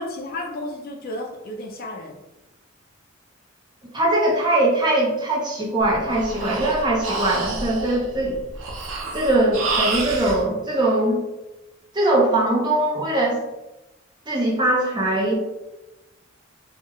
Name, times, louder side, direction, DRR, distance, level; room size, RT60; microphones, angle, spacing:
voice 1, 0.0-2.2, left 1 dB, 45° left, 1 dB, 0.5 m, -32 dB
voice 2, 3.9-8.4 9.1-11.2 11.9-13.4 14.3-15.3, right 1 dB, 20° right, -4 dB, 0.8 m, -21 dB
Breathing, 5.8-10.4, right 3 dB, 75° right, 0.7 m, -29 dB
3.6 x 2.3 x 3.1 m, 1.0 s
head